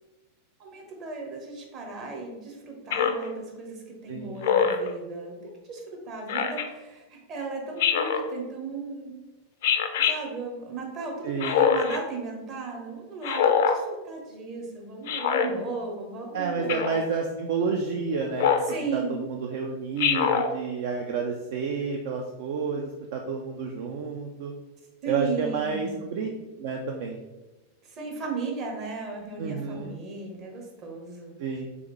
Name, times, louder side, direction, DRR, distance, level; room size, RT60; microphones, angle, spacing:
voice 1, 0.6-9.1 10.0-16.9 18.6-19.2 25.0-25.9 27.8-31.3, right 4 dB, 35° right, 0 dB, 1.1 m, -36 dB
Speech synthesizer, 2.9-3.3 4.4-4.9 6.3-6.7 7.8-8.3 9.6-10.2 11.4-12.0 13.2-13.8 15.1-15.5 16.7-17.0 18.4-18.7 20.0-20.5, left 7 dB, 55° left, 0.4 m, -23 dB
voice 2, 4.1-4.4 11.2-11.6 16.3-18.5 18.9-24.5 25.1-26.3 26.6-27.2 29.4-30.0 31.4-31.7, right 5 dB, 50° right, 2 dB, 0.4 m, -30 dB
3.7 x 3.4 x 3.2 m, 1.1 s
figure-of-eight pair, 90°, 0 cm